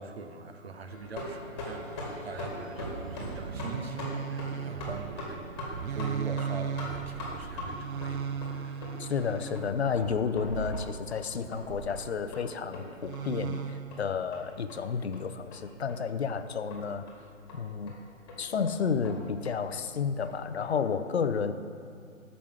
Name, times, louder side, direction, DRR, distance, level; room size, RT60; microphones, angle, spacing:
voice 1, 0.0-9.0, right 4 dB, 50° right, 7 dB, 1.1 m, -43 dB
sound 1, 0.9-20.7, left 1 dB, 20° left, 1.9 m, -43 dB
sound 2, 2.8-12.3 13.0-14.1, right 7 dB, 80° right, 0.5 m, -37 dB
voice 2, 9.0-17.1 17.5-17.9 18.4-21.5, left 6 dB, 50° left, 10 dB, 0.7 m, -31 dB
13.0 x 5.6 x 6.8 m, 2.3 s
figure-of-eight pair, 150°, 40 cm